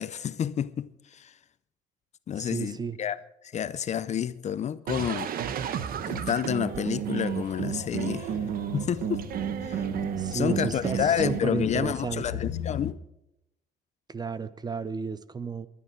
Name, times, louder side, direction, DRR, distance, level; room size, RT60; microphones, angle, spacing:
voice 1, 0.0-1.3 2.3-3.2 3.4-5.3 6.1-8.3 8.7-9.3 9.6-9.8 10.3-13.0, left 9 dB, 40° left, 0.6 m, -29 dB
voice 2, 2.4-3.0 10.2-12.4 14.1-15.7, right 5 dB, 25° right, 0.8 m, -33 dB
sound 1, 4.9-11.4, right 9 dB, 60° right, 1.1 m, -32 dB
sound 2, 7.3-12.9, left 11 dB, 85° left, 1.0 m, -39 dB
21.5 x 11.5 x 4.6 m
cardioid pair, 110°, 17 cm